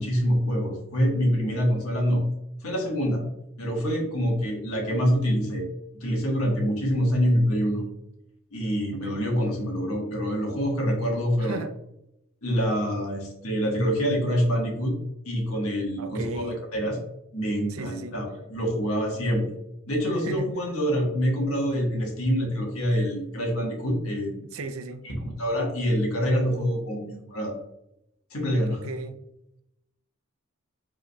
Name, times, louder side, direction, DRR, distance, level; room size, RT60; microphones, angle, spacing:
voice 1, 0.0-2.2 2.6-3.2 3.6-5.7 6.0-7.8 8.5-11.6 12.4-14.9 15.2-17.0 17.3-19.6 19.9-24.4 25.0-27.6 28.3-28.8, equal, 80° left, 0 dB, 1.4 m, -26 dB
voice 2, 11.4-11.7 16.0-16.6 17.7-18.2 20.2-20.5 24.5-25.0 28.6-29.2, right 3 dB, 75° right, 9 dB, 0.5 m, -35 dB
5.2 x 3.7 x 2.3 m, 0.82 s
head